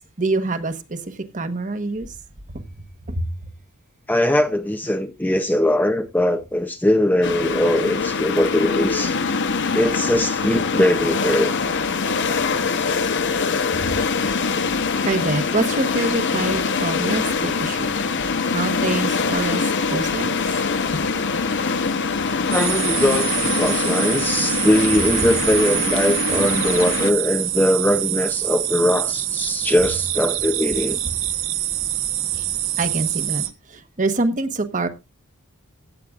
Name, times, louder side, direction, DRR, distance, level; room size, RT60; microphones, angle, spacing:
voice 1, 0.0-2.1 2.5-2.6 3.1-3.3 13.7-14.0 15.0-17.9 18.5-19.6 19.9-20.4 32.3-32.5 32.8-34.9, right 2 dB, 35° right, 1.1 m, -25 dB
voice 2, 4.1-9.2 9.7-11.5 22.5-31.0, left 1 dB, 10° left, 0.6 m, -21 dB
sound 1, 7.2-27.1, left 5 dB, 55° left, 0.9 m, -23 dB
sound 2, 22.5-33.5, right 13 dB, 60° right, 1.0 m, -25 dB
16.0 x 8.5 x 2.4 m
head